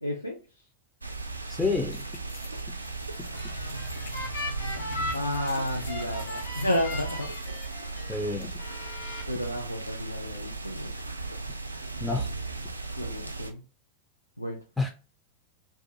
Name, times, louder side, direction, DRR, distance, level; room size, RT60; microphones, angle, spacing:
voice 1, 0.0-0.7 5.1-7.3 9.3-10.9 12.9-13.6 14.4-14.6, left 1 dB, 85° left, 0.4 m, -31 dB
sound 1, 1.0-13.5, right 3 dB, 80° right, 0.3 m, -36 dB
voice 2, 1.5-2.1 8.1-8.5 12.0-12.3 14.8-14.9, left 3 dB, 5° left, 0.4 m, -28 dB
sound 2, 1.9-9.4, left 4 dB, 50° left, 0.7 m, -52 dB
sound 3, 3.1-8.2 8.6-9.2, left 2 dB, 70° left, 1.2 m, -38 dB
2.4 x 2.2 x 2.6 m
figure-of-eight pair, 90°, 0 cm